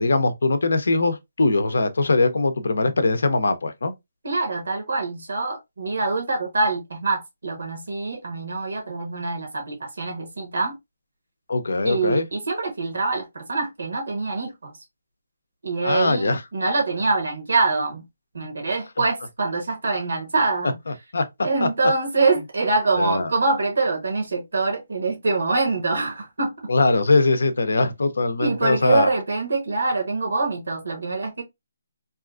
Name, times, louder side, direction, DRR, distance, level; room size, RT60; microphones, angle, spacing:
voice 1, 0.0-3.9 11.5-12.3 15.8-16.4 20.6-21.7 23.0-23.3 26.7-29.1, left 3 dB, 75° left, 0.5 m, -21 dB
voice 2, 4.2-10.8 11.8-14.7 15.6-18.0 18.3-20.7 21.4-26.7 28.4-31.4, right 3 dB, 75° right, 0.9 m, -24 dB
2.7 x 2.4 x 2.3 m
hypercardioid pair, 155°, 0 cm